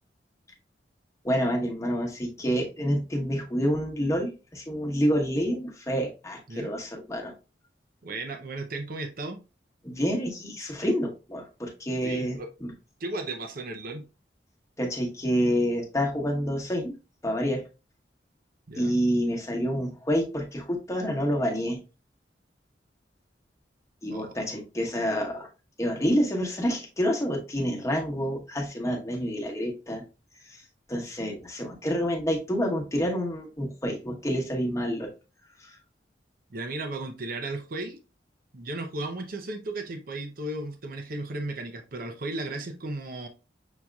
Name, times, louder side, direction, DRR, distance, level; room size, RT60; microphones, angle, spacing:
voice 1, 1.2-7.3 9.8-12.7 14.8-16.9 17.2-17.6 18.8-21.8 24.0-25.5 25.8-30.0 30.5-30.6 30.9-35.1 35.6-35.7, equal, 20° left, 0 dB, 1.0 m, -28 dB
voice 2, 8.0-9.4 12.0-12.5 13.0-14.1 18.7-18.9 24.1-24.3 36.5-38.0 38.5-43.3, right 2 dB, 55° right, 5 dB, 0.6 m, -35 dB
6.2 x 2.8 x 2.3 m, 0.30 s
head